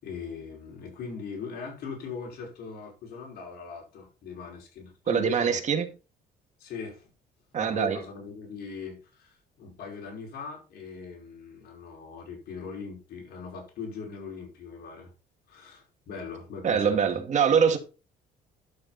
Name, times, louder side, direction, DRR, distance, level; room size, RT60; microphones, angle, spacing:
voice 1, 0.0-5.6 6.6-7.1 7.6-15.1 15.5-17.3, left 5 dB, 65° left, 5.4 m, -40 dB
voice 2, 5.1-5.9 7.5-8.0 16.6-17.8, right 7 dB, 45° right, 2.1 m, -23 dB
11.5 x 6.9 x 4.2 m
cardioid pair, 110°, 17 cm